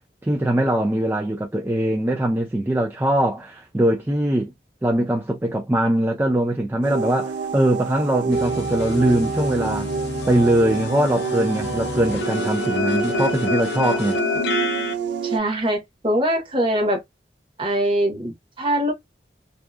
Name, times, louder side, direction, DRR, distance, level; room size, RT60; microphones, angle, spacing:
voice 1, 0.2-4.5 4.8-9.9 10.3-14.1, right 1 dB, 10° right, 0.3 m, -21 dB
sound 1, 6.8-15.4, right 5 dB, 90° right, 0.4 m, -28 dB
sound 2, 8.3-14.9, left 3 dB, 75° left, 0.6 m, -28 dB
voice 2, 15.2-17.0 17.6-18.9, right 1 dB, 30° right, 0.9 m, -22 dB
2.7 x 2.1 x 2.3 m
head